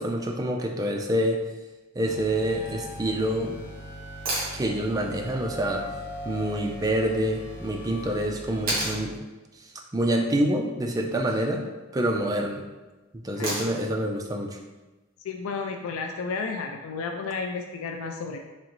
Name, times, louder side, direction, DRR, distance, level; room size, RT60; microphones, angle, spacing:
voice 1, 0.0-1.4 2.0-3.6 4.5-5.9 6.3-9.1 9.9-11.7 11.9-12.6 13.2-14.6, right 1 dB, 15° right, 2 dB, 0.3 m, -26 dB
sound 1, 2.0-9.0, equal, 55° left, 0.7 m, -40 dB
sound 2, 4.3-4.6 6.8-6.9 8.7-9.0 11.0-11.4 13.4-13.9 16.0-16.1, right 1 dB, 45° right, 1.2 m, -30 dB
voice 2, 15.2-18.4, left 4 dB, 75° left, 4 dB, 0.3 m, -32 dB
3.7 x 3.0 x 3.0 m, 1.2 s
head